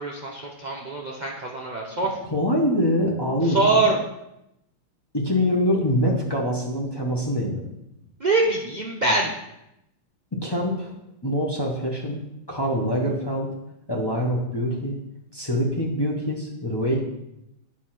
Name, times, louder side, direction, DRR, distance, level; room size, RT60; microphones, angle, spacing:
voice 1, 0.0-2.2 3.5-4.0 8.2-9.3, right 3 dB, 70° right, -2 dB, 0.4 m, -23 dB
voice 2, 2.3-3.9 5.1-7.7 10.3-10.9 11.2-12.2 12.5-13.5 13.9-15.0 15.3-17.0, equal, 15° left, -2 dB, 1.0 m, -24 dB
10.5 x 4.3 x 6.0 m, 0.84 s
omnidirectional pair, 2.3 m